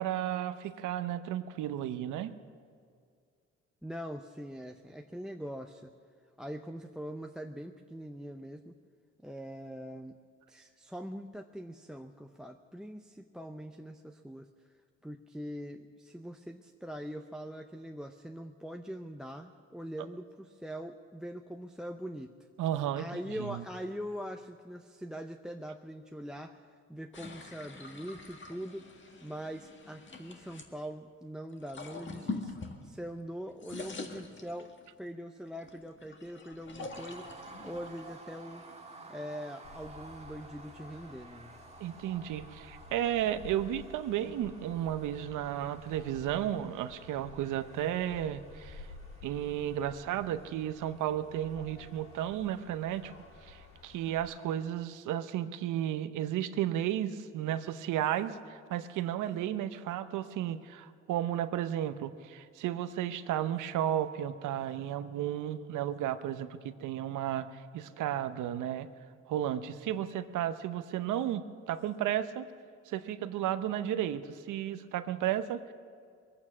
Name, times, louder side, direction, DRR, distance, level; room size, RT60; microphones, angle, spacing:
voice 1, 0.0-2.3 22.6-23.1 23.4-23.6 41.8-48.9 49.2-53.1 53.4-68.9 69.3-72.5 72.9-75.7, right 11 dB, 85° right, 12 dB, 0.8 m, -33 dB
voice 2, 3.8-5.9 6.4-8.7 9.2-10.2 10.5-14.5 15.0-22.3 22.9-34.7 35.0-38.6 39.1-41.5, equal, ahead, 7 dB, 0.6 m, -42 dB
sound 1, 27.1-30.7 31.5-33.2 33.5-35.0 35.5-38.9, left 3 dB, 40° left, 1.7 m, -45 dB
sound 2, 36.9-54.1, right 3 dB, 20° right, 1.6 m, -54 dB
sound 3, 39.6-54.3, left 4 dB, 65° left, 2.1 m, -53 dB
21.5 x 8.8 x 7.3 m, 2.2 s
cardioid pair, 90°, 30 cm